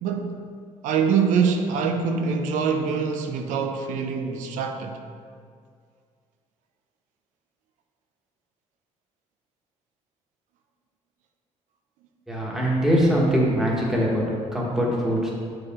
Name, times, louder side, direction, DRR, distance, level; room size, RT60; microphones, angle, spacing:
voice 1, 0.0-0.4 0.8-5.0, right 6 dB, 90° right, 0.5 m, -24 dB
voice 2, 12.3-14.2 14.5-15.3, equal, 5° right, 1.3 m, -22 dB
6.4 x 4.8 x 3.6 m
cardioid pair, 120°, 13 cm